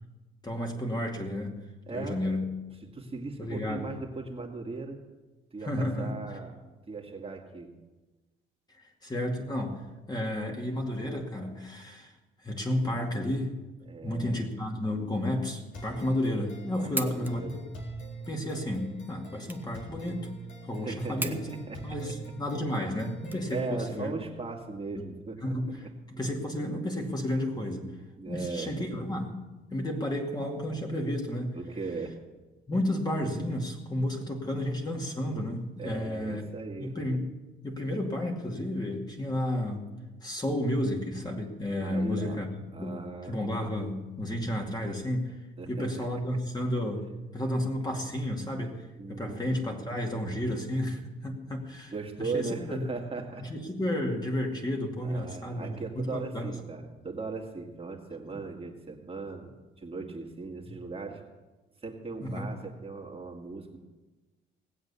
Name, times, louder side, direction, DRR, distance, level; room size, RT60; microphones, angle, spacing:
voice 1, 0.4-1.6 1.9-2.5 3.4-3.9 5.6-6.2 9.0-9.8 10.1-12.1 12.4-13.5 14.0-17.6 18.3-20.3 20.7-21.5 21.8-24.1 25.4-27.9 28.3-29.3 29.7-31.5 32.7-36.4 36.8-37.3 37.6-39.8 40.2-42.5 42.8-43.0 43.3-45.4 45.7-47.1 47.3-51.9 52.2-52.8 53.4-56.5 58.3-58.4 62.2-62.5, left 1 dB, 20° left, 1 dB, 2.4 m, -32 dB
voice 2, 1.9-2.2 2.9-5.0 5.5-6.5 6.9-7.7 13.8-14.4 16.8-17.6 20.8-22.0 23.5-25.5 27.6-27.7 28.2-28.7 31.5-32.2 35.8-36.9 41.8-42.4 42.7-43.4 45.6-45.9 46.1-46.2 49.0-49.5 51.9-53.4 55.0-59.5 59.8-61.2 61.8-63.8, right 4 dB, 30° right, 1 dB, 2.1 m, -38 dB
sound 1, 15.7-23.7, right 3 dB, 70° left, 3.8 m, -44 dB
sound 2, 16.9-24.0, right 2 dB, 10° right, 1.1 m, -41 dB
18.5 x 7.9 x 7.0 m, 1.2 s
cardioid pair, 90°, 20 cm